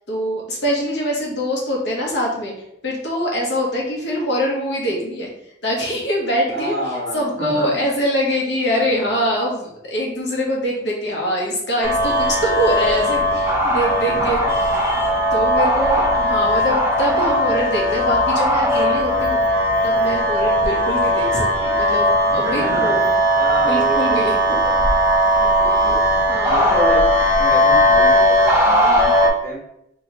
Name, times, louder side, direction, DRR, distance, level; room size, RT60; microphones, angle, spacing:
voice 1, 0.1-2.5 2.8-5.3 5.6-6.7 7.1-14.4 15.3-19.4 19.8-23.0 23.7-24.3 25.6-25.9 26.3-26.7, equal, 70° left, -2 dB, 1.0 m, -23 dB
voice 2, 6.5-7.9 8.7-9.3 14.1-14.6 22.3-23.0 23.3-25.0 25.4-26.0 26.4-27.1 27.3-29.6, equal, 50° right, -3 dB, 1.0 m, -29 dB
sound 1, 11.8-29.3, equal, 15° right, 0.4 m, -18 dB
3.0 x 2.8 x 2.9 m, 0.79 s
head